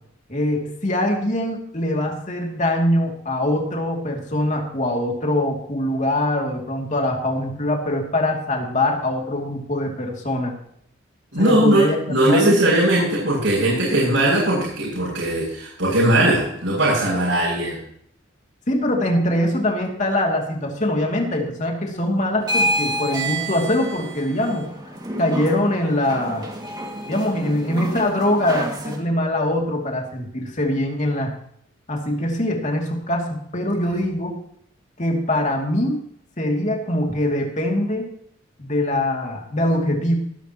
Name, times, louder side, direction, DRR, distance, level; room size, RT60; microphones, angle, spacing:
voice 1, 0.3-10.5 11.4-12.5 18.7-24.7 25.2-26.5 27.1-31.3 31.9-34.4 35.0-36.0 36.4-38.1 38.6-40.1, left 1 dB, 40° left, 1 dB, 2.7 m, -23 dB
voice 2, 11.3-17.8 33.9-34.0, right 1 dB, 80° right, -8 dB, 6.8 m, -19 dB
sound 1, 22.4-29.0, right 1 dB, 20° right, 2.2 m, -28 dB
20.0 x 10.5 x 3.1 m, 0.68 s
head